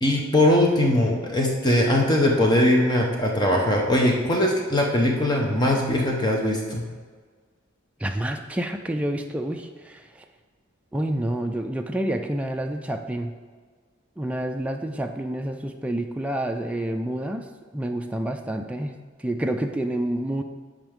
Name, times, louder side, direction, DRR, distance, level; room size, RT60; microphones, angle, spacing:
voice 1, 0.0-6.8, left 1 dB, 20° left, 0 dB, 0.8 m, -21 dB
voice 2, 8.0-10.2 10.9-13.3 14.2-17.5 17.7-18.9 19.2-20.4, right 1 dB, 5° right, 4 dB, 0.3 m, -28 dB
8.8 x 5.1 x 3.6 m, 1.6 s
head